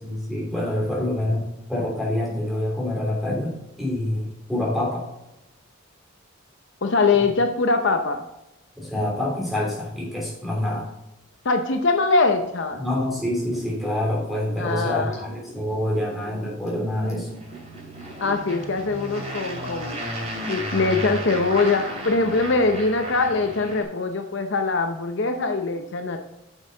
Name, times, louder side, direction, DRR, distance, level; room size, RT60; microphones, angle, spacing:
voice 1, 0.0-5.1 7.2-7.3 8.8-10.9 12.8-17.3, left 1 dB, ahead, -4 dB, 3.1 m, -26 dB
voice 2, 6.8-8.2 11.4-12.8 14.6-15.1 18.2-20.0 20.5-26.2, left 3 dB, 60° left, 5 dB, 0.7 m, -22 dB
Liquid, 12.4-18.5 18.8-18.9, right 1 dB, 15° left, 3.2 m, -42 dB
sound 1, 17.3-23.8, equal, 30° right, 2.5 m, -33 dB
8.9 x 6.4 x 3.9 m, 0.90 s
head